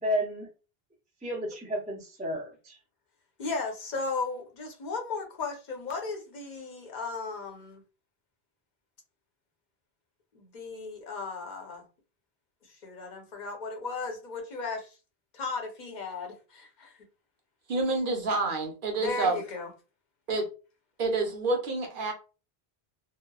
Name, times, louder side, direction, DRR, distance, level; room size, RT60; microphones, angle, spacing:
voice 1, 0.0-0.5 1.2-2.8, equal, 10° right, 0.5 m, -32 dB
voice 2, 3.4-7.8 10.3-11.8 12.8-14.9 15.3-17.0 19.0-19.7, left 4 dB, 50° left, 0.8 m, -36 dB
voice 3, 17.7-19.4 20.3-20.5 21.0-22.1, right 3 dB, 60° right, 0.8 m, -28 dB
2.9 x 2.0 x 2.2 m
omnidirectional pair, 1.0 m